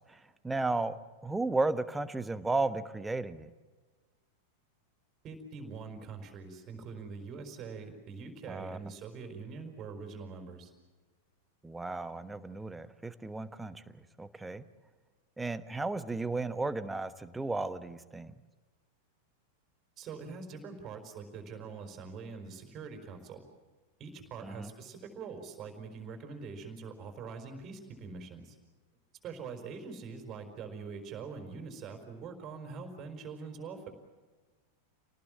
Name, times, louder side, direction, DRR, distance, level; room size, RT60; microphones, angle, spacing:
voice 1, 0.1-0.9 1.2-3.5 8.5-8.8 11.6-14.6 15.4-18.4 24.4-24.7, right 3 dB, 10° right, 12 dB, 1.1 m, -34 dB
voice 2, 5.2-10.7 20.0-23.4 24.0-28.6 29.2-33.9, right 5 dB, 30° right, 5 dB, 4.7 m, -44 dB
28.5 x 19.0 x 7.5 m, 1.3 s
figure-of-eight pair, 90°, 0 cm